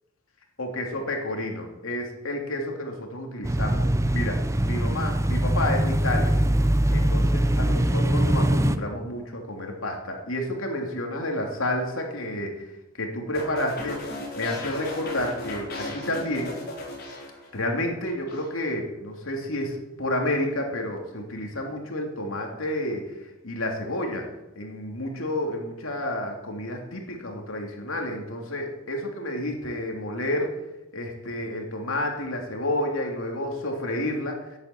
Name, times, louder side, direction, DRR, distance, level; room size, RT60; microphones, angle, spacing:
voice 1, 0.6-6.4 6.9-12.7 13.0-14.0 14.4-16.6 17.5-23.0 23.4-24.2 24.5-30.5 30.9-34.3, left 1 dB, 75° left, 1 dB, 3.0 m, -30 dB
sound 1, 3.4-8.8, right 1 dB, 15° right, 0.7 m, -22 dB
sound 2, 13.3-17.8 18.1-18.5, left 2 dB, 50° left, 4.6 m, -35 dB
10.5 x 10.5 x 8.5 m, 1.0 s
head